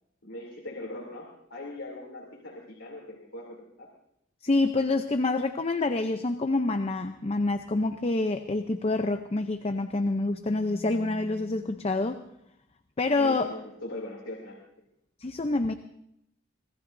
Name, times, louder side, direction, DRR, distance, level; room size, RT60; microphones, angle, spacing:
voice 1, 0.2-3.9 13.1-14.6, left 1 dB, 80° left, -2 dB, 3.0 m, -40 dB
voice 2, 4.4-12.2 13.0-13.5 15.2-15.7, left 2 dB, 30° left, 7 dB, 0.6 m, -27 dB
sound 1, 9.6-12.1, left 5 dB, 80° right, 5.0 m, -47 dB
25.5 x 18.0 x 2.7 m, 0.77 s
head